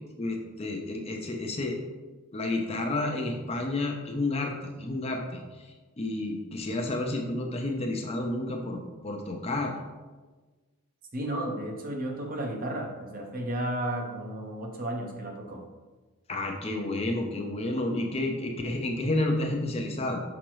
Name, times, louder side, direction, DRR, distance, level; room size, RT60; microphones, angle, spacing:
voice 1, 0.2-1.8 2.3-4.5 4.8-5.4 6.0-9.7 16.3-20.2, left 2 dB, 25° left, 2 dB, 0.6 m, -30 dB
voice 2, 11.1-15.6, right 1 dB, 40° right, 1 dB, 0.8 m, -33 dB
6.0 x 5.1 x 3.1 m, 1.3 s
head